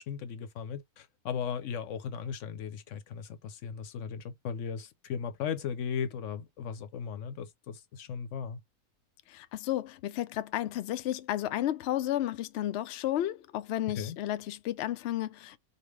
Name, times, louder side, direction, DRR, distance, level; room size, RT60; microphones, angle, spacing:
voice 1, 0.0-8.6 14.0-14.2, left 7 dB, 60° left, 0.9 m, -37 dB
voice 2, 9.3-15.6, left 13 dB, 80° left, 0.5 m, -32 dB
4.2 x 2.8 x 3.2 m
omnidirectional pair, 1.7 m